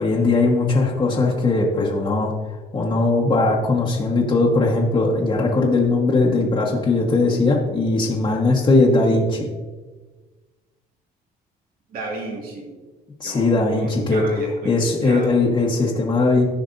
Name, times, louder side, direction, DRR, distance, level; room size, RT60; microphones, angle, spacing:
voice 1, 0.0-2.3 2.7-9.5 13.2-14.2 14.6-16.5, left 3 dB, 25° left, -4 dB, 1.2 m, -19 dB
voice 2, 11.9-12.7 13.2-14.7 15.0-15.3, right 2 dB, 60° right, -1 dB, 1.9 m, -33 dB
14.0 x 5.1 x 2.6 m, 1.3 s
cardioid pair, 110°, 17 cm